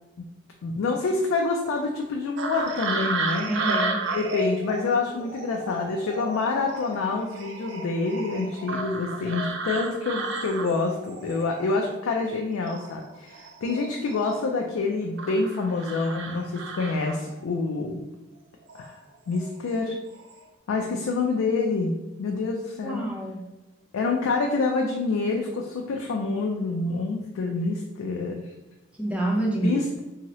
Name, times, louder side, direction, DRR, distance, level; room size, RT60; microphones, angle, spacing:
voice 1, 0.6-3.5 4.1-18.0 18.7-19.0 19.3-20.0 20.7-23.1 23.9-28.5 29.6-30.0, left 3 dB, 90° left, 1 dB, 0.4 m, -27 dB
sound 1, 2.4-12.4 12.7-14.6 15.2-17.4 18.6-18.9 19.3-19.8 20.1-20.4, right 3 dB, 60° right, 0.4 m, -33 dB
voice 2, 3.5-4.1 22.8-23.5 29.0-29.8, right 1 dB, 5° right, -2 dB, 0.5 m, -27 dB
2.8 x 2.7 x 2.9 m, 1.1 s
head